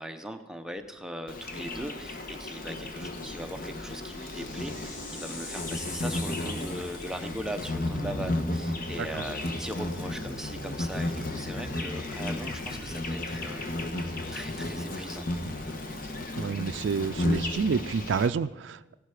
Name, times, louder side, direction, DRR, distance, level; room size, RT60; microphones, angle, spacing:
voice 1, 0.0-13.6 14.3-15.3, right 1 dB, 5° right, 6 dB, 0.7 m, -39 dB
sound 1, 0.8-1.1 1.5-1.6 3.0-7.7, left 3 dB, 85° left, 2.4 m, -44 dB
Insect, 1.3-18.3, left 1 dB, 50° left, 1.3 m, -34 dB
voice 2, 16.4-19.0, right 5 dB, 70° right, 11 dB, 0.4 m, -29 dB
15.5 x 11.0 x 4.9 m, 1.1 s
head